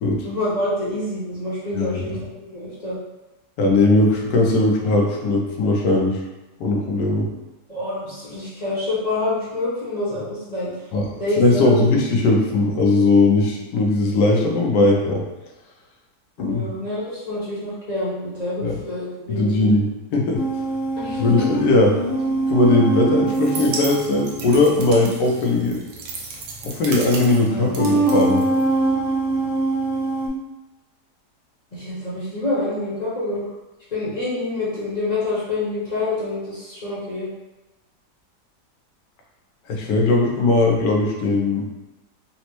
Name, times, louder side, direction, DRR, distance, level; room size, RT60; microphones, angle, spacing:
voice 1, 0.2-2.2 2.5-2.9 7.7-10.7 11.2-11.9 16.4-19.6 21.0-21.5 31.7-33.5 33.9-37.3, left 2 dB, 35° left, -10 dB, 0.7 m, -26 dB
voice 2, 3.6-6.2 6.6-7.3 10.9-11.1 11.4-15.2 16.4-16.7 18.6-18.8 19.3-20.4 21.2-22.0 22.5-25.8 26.6-28.4 39.7-41.6, left 2 dB, 85° left, 0 dB, 1.3 m, -19 dB
sound 1, 20.4-25.2 26.5-26.6 27.4-30.3, right 2 dB, 65° left, 1.5 m, -23 dB
sound 2, 23.3-29.0, right 3 dB, 85° right, 1.2 m, -35 dB
4.2 x 2.0 x 2.9 m, 1.0 s
omnidirectional pair, 1.8 m